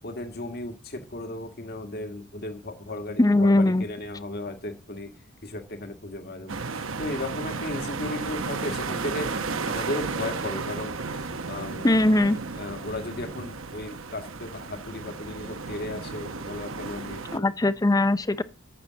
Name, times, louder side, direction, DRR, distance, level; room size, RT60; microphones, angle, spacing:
voice 1, 0.0-5.1 5.4-9.4 9.7-11.9 12.6-17.5, left 2 dB, 50° left, 1.7 m, -35 dB
voice 2, 3.2-3.8 11.8-12.4 17.3-18.4, left 2 dB, 15° left, 0.5 m, -20 dB
sound 1, 6.5-17.4, right 4 dB, 65° right, 1.0 m, -33 dB
11.5 x 7.3 x 7.4 m
head